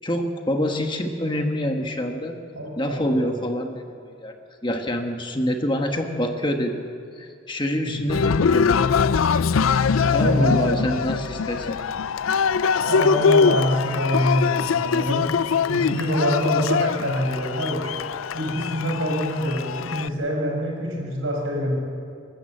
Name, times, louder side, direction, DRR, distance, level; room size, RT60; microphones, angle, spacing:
voice 1, 0.0-2.4 2.8-3.8 4.2-4.3 4.6-6.8 7.2-9.0 10.1-11.8, equal, 25° left, 4 dB, 1.4 m, -26 dB
voice 2, 2.5-3.3 7.8-8.1 10.0-10.6 12.9-15.3 15.7-17.9 18.3-21.8, equal, 90° right, 0 dB, 6.1 m, -25 dB
Cheering, 8.1-20.1, left 6 dB, 90° left, 0.4 m, -22 dB
27.0 x 13.0 x 8.0 m, 2.3 s
head